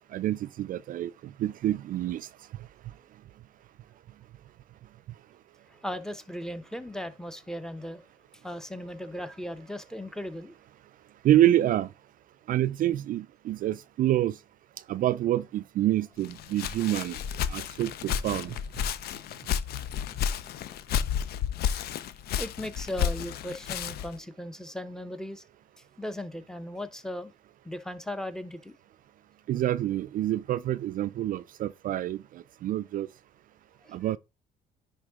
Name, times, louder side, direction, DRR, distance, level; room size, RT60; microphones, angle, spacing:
voice 1, 0.1-1.1 1.4-2.3 11.2-11.9 12.5-14.4 14.9-17.2 17.5-18.6 29.5-33.1 33.9-34.2, right 13 dB, 55° right, 0.4 m, -27 dB
voice 2, 5.7-8.0 8.4-10.5 22.4-25.4 26.0-27.3 27.6-28.7 33.8-33.9, left 1 dB, 5° left, 0.8 m, -37 dB
Walk footsteps, 16.2-24.2, left 8 dB, 65° left, 0.6 m, -32 dB
10.0 x 3.6 x 3.6 m
cardioid pair, 110°, 17 cm